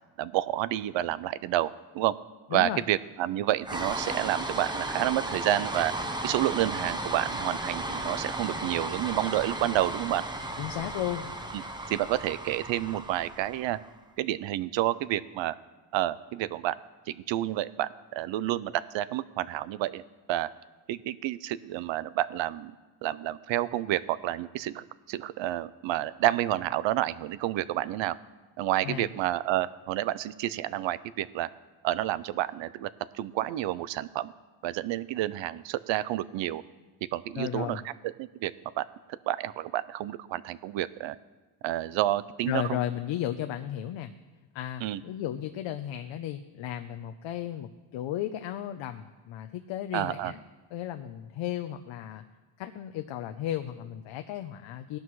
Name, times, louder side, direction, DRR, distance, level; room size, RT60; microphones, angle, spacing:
voice 1, 0.2-1.7 1.9-2.1 2.5-5.9 6.2-10.2 11.5-11.6 11.9-13.8 14.2-15.5 15.9-16.8 17.1-20.5 20.9-22.7 23.0-28.2 28.6-31.5 31.8-32.9 33.1-34.3 34.6-36.6 37.1-37.9 38.2-38.9 39.3-41.2 41.6-42.8 44.8-45.0 49.9-50.3, right 14 dB, 70° right, 17 dB, 0.6 m, -29 dB
voice 2, 2.5-2.8 10.6-11.3 28.8-29.1 37.4-37.8 42.5-44.1 44.5-50.4 50.7-52.2 52.6-55.0, left 11 dB, 75° left, 7 dB, 0.7 m, -34 dB
sound 1, 3.6-13.9, right 1 dB, 10° right, 0.9 m, -35 dB
18.0 x 11.5 x 3.2 m, 1.2 s
cardioid pair, 125°, 46 cm